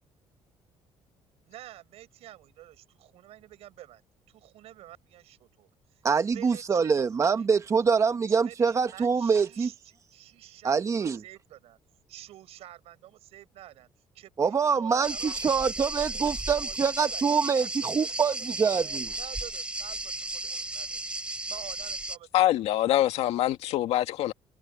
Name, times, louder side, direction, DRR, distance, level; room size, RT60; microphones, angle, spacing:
voice 1, 1.4-4.0 4.3-7.5 8.4-9.7 10.1-11.8 12.1-13.9 14.1-16.2 16.5-17.2 17.5-21.2 21.5-22.3, right 14 dB, 75° right, 7.3 m, -49 dB
voice 2, 6.0-9.7 10.6-11.2 14.4-19.1, right 5 dB, 30° right, 1.1 m, -25 dB
sound 1, 15.0-22.2, right 2 dB, 10° right, 3.7 m, -34 dB
voice 3, 22.3-24.3, left 14 dB, 80° left, 2.1 m, -24 dB
cardioid pair, 150°, 11 cm